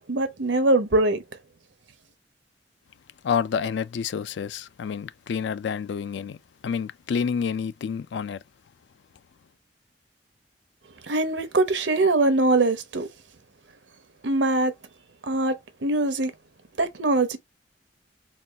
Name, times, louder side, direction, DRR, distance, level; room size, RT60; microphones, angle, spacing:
voice 1, 0.1-1.2 11.1-13.1 14.2-14.7 15.3-16.3 16.8-17.4, right 2 dB, 90° right, 0.8 m, -22 dB
voice 2, 3.2-6.4 6.6-8.4, left 6 dB, 70° left, 0.3 m, -28 dB
4.1 x 2.3 x 3.3 m
head